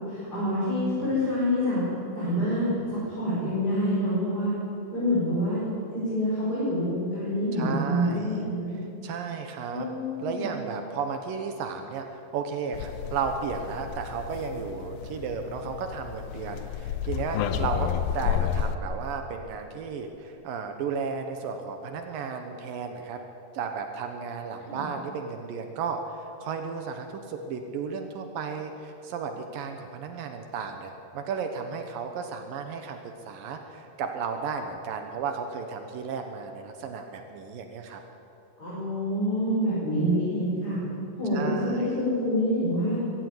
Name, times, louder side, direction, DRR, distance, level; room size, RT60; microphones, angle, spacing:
voice 1, 0.1-1.8 2.1-4.5 4.9-5.6 5.9-8.7 9.7-10.6 24.6-24.9 38.6-40.8 41.1-43.0, equal, 25° left, -9 dB, 6.2 m, -27 dB
voice 2, 7.5-8.4 9.0-9.9 10.2-23.2 23.5-33.0 33.3-38.0 41.3-41.9, right 5 dB, 75° right, 5 dB, 2.9 m, -34 dB
sound 1, 12.7-18.8, left 9 dB, 85° left, 2.7 m, -31 dB
21.0 x 16.0 x 9.8 m, 2.8 s
omnidirectional pair, 4.1 m